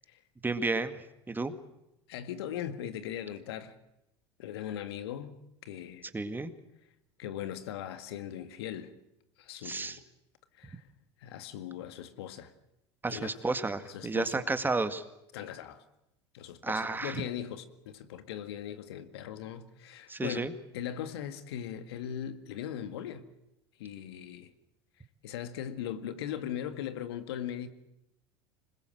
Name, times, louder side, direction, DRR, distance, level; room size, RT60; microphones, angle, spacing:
voice 1, 0.4-1.5 6.1-6.5 9.6-10.0 13.0-15.0 16.6-17.2 20.1-20.5, right 3 dB, 15° right, 2.0 m, -32 dB
voice 2, 2.1-3.8 4.4-6.1 7.2-8.9 9.4-9.9 10.6-10.8 11.2-12.5 13.1-13.4 13.8-14.5 15.3-15.8 16.3-20.5 20.7-23.2 23.8-24.5 25.2-27.7, left 10 dB, 70° left, 1.9 m, -39 dB
26.0 x 21.0 x 7.8 m
figure-of-eight pair, 75°, 14 cm